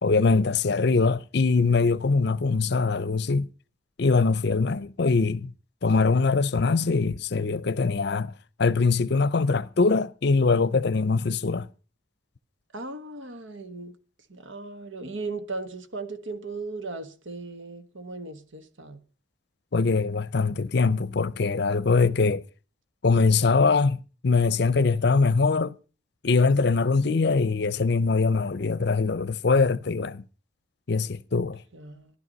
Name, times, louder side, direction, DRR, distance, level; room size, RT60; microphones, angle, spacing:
voice 1, 0.0-3.5 4.0-5.5 5.8-8.3 8.6-11.7 19.7-22.4 23.0-24.0 24.2-25.7 26.2-30.2 30.9-31.6, left 4 dB, 55° left, 0.6 m, -22 dB
voice 2, 12.7-13.9 14.3-19.0 31.7-32.1, right 3 dB, 80° right, 1.4 m, -37 dB
14.0 x 11.5 x 5.2 m
head